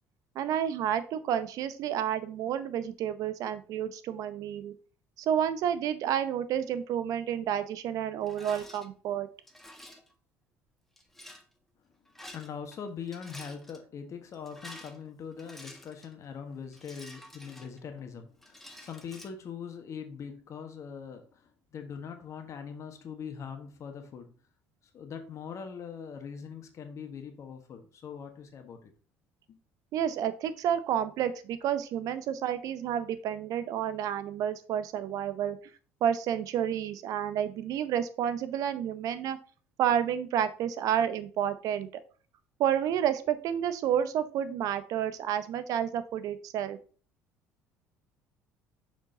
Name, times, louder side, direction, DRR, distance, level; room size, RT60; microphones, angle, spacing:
voice 1, 0.4-4.7 5.2-9.3 29.9-35.6 36.0-39.4 39.8-41.9 42.6-46.8, right 9 dB, 60° right, 0.7 m, -30 dB
Rattle, 8.2-8.9 9.5-10.1 11.0-11.4 12.1-12.8 13.0-13.8 14.3-16.1 16.7-18.0 18.4-19.3, left 1 dB, 5° left, 1.3 m, -49 dB
voice 2, 12.3-24.3 24.9-28.9 29.5-29.6, left 6 dB, 50° left, 1.3 m, -42 dB
6.2 x 5.0 x 3.8 m
hypercardioid pair, 60°, 7 cm